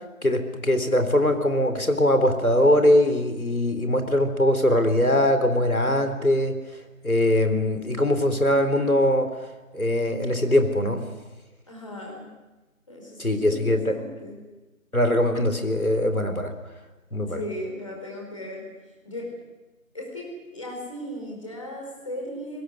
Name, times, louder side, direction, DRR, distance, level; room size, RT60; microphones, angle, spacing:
voice 1, 0.2-6.6 7.0-9.3 9.7-11.0 13.2-13.9 14.9-16.5 17.1-17.4, left 1 dB, 90° left, 7 dB, 3.8 m, -21 dB
voice 2, 11.7-12.3 12.9-14.4 17.3-18.7 19.0-19.3 19.9-22.6, left 1 dB, 25° left, -1 dB, 4.7 m, -36 dB
26.5 x 21.5 x 6.5 m, 1.1 s
figure-of-eight pair, 170°, 42 cm